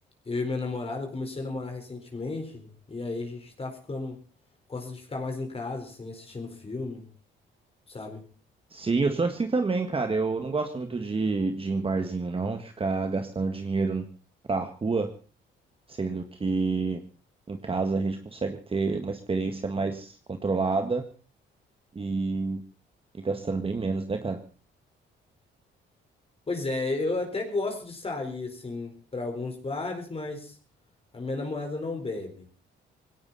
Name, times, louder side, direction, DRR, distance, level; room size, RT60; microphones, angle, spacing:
voice 1, 0.2-4.2 4.7-7.1 7.9-8.3 26.5-30.6 31.1-32.5, left 3 dB, 30° left, 3 dB, 4.5 m, -33 dB
voice 2, 8.7-14.0 14.5-15.1 15.9-17.0 17.5-21.0 22.0-22.6 23.2-24.4, right 4 dB, 30° right, 6 dB, 1.8 m, -28 dB
19.0 x 17.5 x 4.2 m, 0.37 s
cardioid pair, 90°, 20 cm